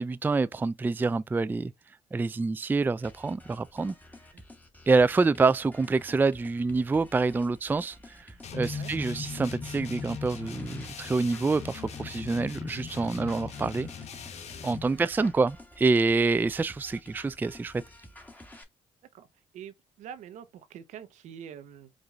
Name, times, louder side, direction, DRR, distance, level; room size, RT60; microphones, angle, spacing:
voice 1, 0.0-1.7 2.1-3.9 4.9-13.9 14.6-17.8, right 3 dB, 15° right, 0.3 m, -27 dB
sound 1, 3.0-18.6, left 1 dB, 15° left, 1.7 m, -51 dB
sound 2, 8.4-14.9, left 7 dB, 60° left, 1.1 m, -41 dB
sound 3, 8.5-12.0, left 2 dB, 40° left, 2.6 m, -41 dB
voice 2, 14.9-15.3 19.1-19.3 19.5-21.9, right 8 dB, 70° right, 0.8 m, -45 dB
4.9 x 2.6 x 3.6 m
supercardioid pair, 60°, 13 cm